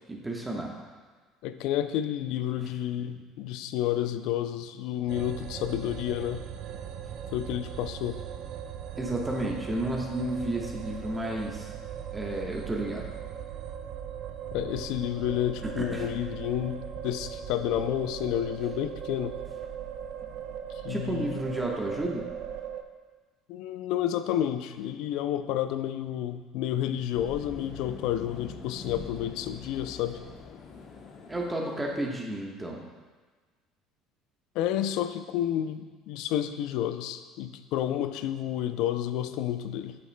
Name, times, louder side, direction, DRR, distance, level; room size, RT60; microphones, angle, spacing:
voice 1, 0.1-0.8 9.0-11.7 12.1-13.1 15.6-16.1 20.9-22.2 31.3-32.8, right 1 dB, 15° right, -1 dB, 1.2 m, -32 dB
voice 2, 1.4-6.4 7.3-8.2 14.5-19.4 20.8-21.4 23.5-30.2 34.6-40.0, left 11 dB, 70° left, 10 dB, 0.4 m, -30 dB
sound 1, 5.1-22.8, right 8 dB, 60° right, 0.4 m, -39 dB
sound 2, 27.1-32.1, left 4 dB, 55° left, 0.9 m, -44 dB
8.5 x 7.1 x 2.2 m, 1.4 s
hypercardioid pair, 70°, 0 cm